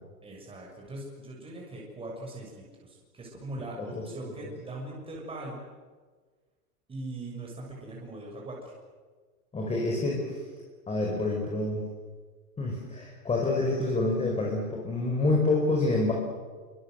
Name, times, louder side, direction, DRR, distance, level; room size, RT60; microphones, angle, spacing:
voice 1, 0.2-5.6 6.9-8.7, right 2 dB, 10° right, -2 dB, 6.6 m, -40 dB
voice 2, 9.5-10.4 10.9-11.9 12.6-16.1, left 2 dB, 15° left, 0 dB, 5.0 m, -27 dB
26.0 x 25.0 x 7.9 m, 1.4 s
hypercardioid pair, 140°, 46 cm